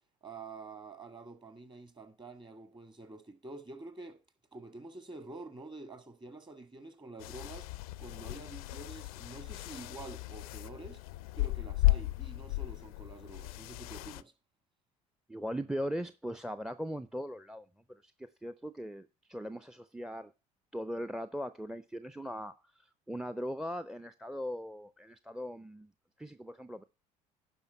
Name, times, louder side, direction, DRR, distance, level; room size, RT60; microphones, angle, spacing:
voice 1, 0.2-4.2 4.5-7.7 8.0-11.0 11.4-14.3, right 3 dB, 25° right, 1.7 m, -48 dB
sound 1, 7.2-14.2, left 19 dB, 85° left, 0.4 m, -35 dB
voice 2, 15.3-20.3 20.7-25.9 26.2-26.8, equal, 5° right, 0.5 m, -39 dB
11.0 x 5.3 x 5.5 m
hypercardioid pair, 65°, 18 cm